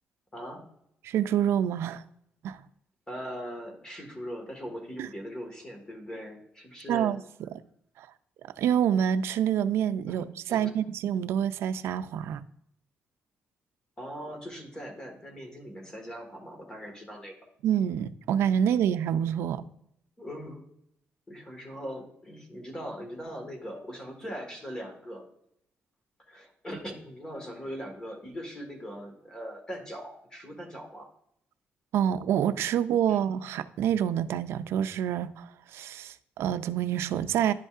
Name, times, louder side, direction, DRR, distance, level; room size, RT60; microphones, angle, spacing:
voice 1, 0.3-0.6 3.1-7.1 10.1-10.7 14.0-17.3 20.2-20.6 21.3-25.3 26.3-31.1 33.1-33.2, equal, 20° left, 1.6 m, -40 dB
voice 2, 1.0-2.0 2.4-2.6 5.0-5.1 6.9-7.2 8.0-8.1 8.6-12.4 17.6-19.6 31.9-37.5, right 9 dB, 85° right, 0.4 m, -27 dB
10.5 x 5.3 x 2.4 m
cardioid pair, 135°, 4 cm